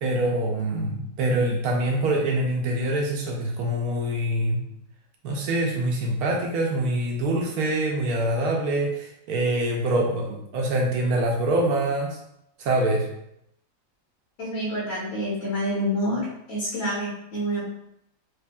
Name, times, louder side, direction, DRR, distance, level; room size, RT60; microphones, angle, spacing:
voice 1, 0.0-4.6 5.2-12.2 12.6-13.1, right 1 dB, 85° right, 0 dB, 1.1 m, -25 dB
voice 2, 14.4-17.6, equal, 70° left, -6 dB, 1.4 m, -28 dB
4.9 x 2.6 x 2.2 m, 0.78 s
omnidirectional pair, 1.5 m